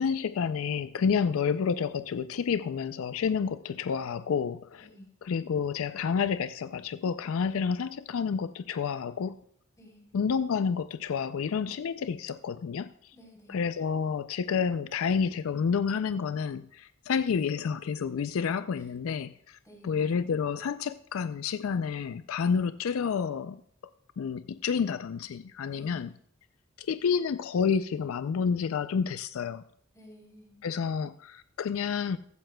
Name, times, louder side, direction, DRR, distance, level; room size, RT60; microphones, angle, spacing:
voice 1, 0.0-4.9 5.2-9.4 10.1-13.1 13.5-23.6 24.2-26.1 26.8-29.6 30.6-32.2, left 6 dB, 75° left, 13 dB, 0.4 m, -29 dB
voice 2, 4.8-5.1 9.8-10.0 13.1-13.6 18.8-18.9 19.6-20.0 25.7-26.0 29.9-30.6, equal, 15° left, -2 dB, 3.7 m, -52 dB
15.5 x 13.5 x 2.2 m, 0.65 s
head